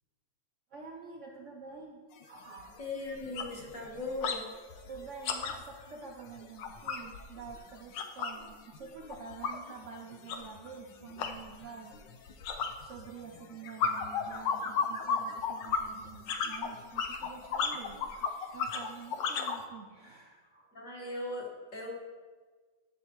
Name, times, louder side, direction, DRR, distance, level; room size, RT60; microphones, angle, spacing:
voice 1, 0.7-2.8 4.9-12.1 12.8-20.7, right 5 dB, 60° right, 0 dB, 0.8 m, -48 dB
sound 1, 2.1-2.2 2.6-2.8 3.1-4.4 4.7-8.5 8.7-19.6, left 5 dB, 85° left, 1.4 m, -35 dB
voice 2, 2.8-4.5 20.7-21.9, left 2 dB, 45° left, -3 dB, 1.9 m, -38 dB
10.5 x 7.0 x 3.1 m, 1.4 s
omnidirectional pair, 2.0 m